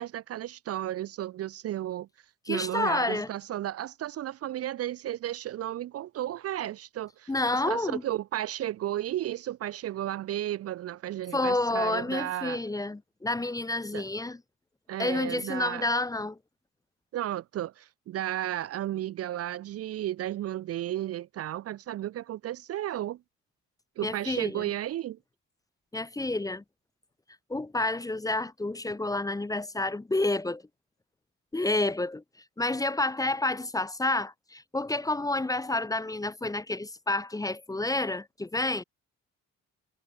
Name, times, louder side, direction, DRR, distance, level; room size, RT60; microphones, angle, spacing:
voice 1, 0.0-2.1 2.5-12.6 13.9-14.0 14.9-15.8 17.1-23.2 24.0-25.2, right 13 dB, 55° right, 0.4 m, -33 dB
voice 2, 2.5-3.3 7.3-8.0 11.3-14.4 15.0-16.4 24.0-24.7 25.9-26.6 27.5-30.6 31.5-32.2 32.6-38.8, left 2 dB, 10° left, 0.7 m, -29 dB
cardioid pair, 90°, 30 cm